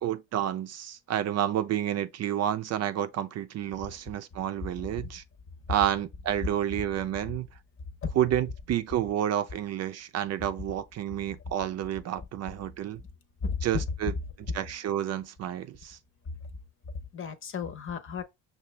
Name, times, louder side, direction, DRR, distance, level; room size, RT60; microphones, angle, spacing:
voice 1, 0.0-5.2 5.7-7.5 8.2-13.0 13.6-14.1 14.5-16.0, right 11 dB, 50° right, 0.5 m, -30 dB
voice 2, 13.4-13.8 14.5-14.6 17.1-18.2, left 5 dB, 40° left, 0.9 m, -33 dB
5.7 x 2.4 x 3.2 m
cardioid pair, 95°, 34 cm